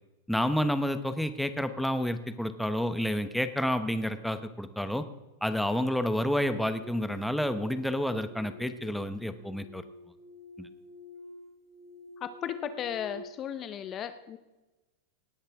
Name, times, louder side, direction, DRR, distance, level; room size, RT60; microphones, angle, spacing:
voice 1, 0.3-5.0 5.4-9.8 10.6-10.7, equal, ahead, 10 dB, 0.9 m, -29 dB
sound 1, 6.8-13.2, left 2 dB, 25° right, 1.4 m, -49 dB
voice 2, 12.2-14.4, left 9 dB, 35° left, 12 dB, 0.7 m, -35 dB
18.5 x 10.0 x 3.5 m, 1.1 s
hypercardioid pair, 110°, 0 cm